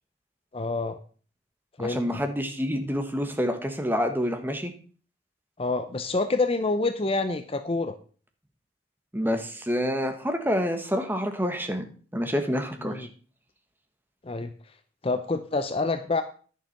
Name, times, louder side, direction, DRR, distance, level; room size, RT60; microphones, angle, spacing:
voice 1, 0.5-1.0 1.8-2.0 5.6-8.0 12.8-13.1 14.2-14.5 15.0-16.2, left 3 dB, 30° left, 9 dB, 0.6 m, -27 dB
voice 2, 1.8-4.7 9.1-11.9 12.1-13.1, equal, 10° right, 6 dB, 1.3 m, -27 dB
10.5 x 7.0 x 5.8 m, 0.41 s
head